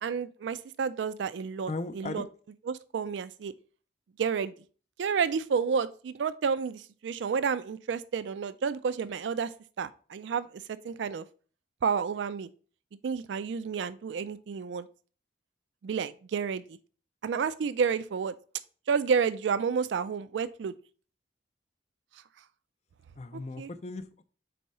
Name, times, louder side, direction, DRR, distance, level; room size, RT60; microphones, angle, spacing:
voice 1, 0.0-2.3 2.7-3.5 4.2-4.5 5.0-9.5 9.8-11.3 11.8-12.5 13.0-14.9 15.8-16.8 17.2-18.3 18.9-20.7 23.6-23.7, right 6 dB, 85° right, 14 dB, 0.4 m, -30 dB
voice 2, 1.7-2.2 23.2-24.2, left 3 dB, 35° left, 10 dB, 0.4 m, -37 dB
4.6 x 4.2 x 5.3 m, 0.40 s
head